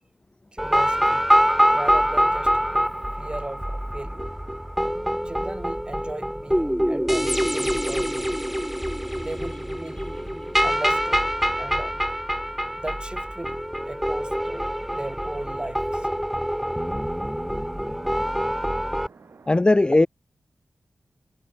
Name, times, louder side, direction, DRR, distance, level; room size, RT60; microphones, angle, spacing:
voice 1, 0.5-1.3 1.5-4.4 5.1-8.4 9.2-10.1 10.6-16.1 17.5-18.2, right 1 dB, 20° right, 4.7 m, -37 dB
sound 1, 0.6-19.1, equal, 5° right, 0.7 m, -25 dB
sound 2, 1.1-19.6, right 5 dB, 75° right, 2.9 m, -52 dB
voice 2, 19.5-20.1, left 2 dB, 20° left, 0.4 m, -17 dB
wide cardioid pair, 80°, 4 cm